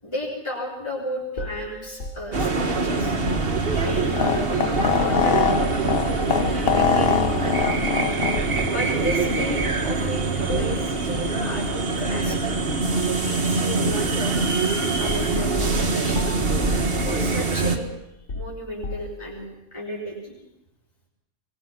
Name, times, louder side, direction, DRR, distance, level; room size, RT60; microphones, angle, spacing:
voice 1, 0.0-3.2 3.8-5.4 6.0-7.1 7.4-8.1 8.6-10.2 10.6-12.4 13.2-14.4 15.0-16.3 17.0-17.9 18.3-20.4, equal, 20° left, -6 dB, 4.2 m, -33 dB
sound 1, 1.4-4.1 4.7-5.0 5.7-6.1 6.4-7.1 7.6-7.8 8.3-8.7 9.1-9.9 10.5-10.8 11.1-11.4 11.7-11.9 12.7-13.3 13.9-14.7 15.1-15.3 15.6-15.8 16.1-16.5 17.0-17.2 17.6-19.3, left 1 dB, 70° left, 3.5 m, -34 dB
sound 2, 2.3-17.8, right 3 dB, 45° right, 1.8 m, -24 dB
sound 3, 3.9-8.9, left 7 dB, 50° left, 1.0 m, -24 dB
22.0 x 21.0 x 5.9 m, 0.88 s
omnidirectional pair, 1.4 m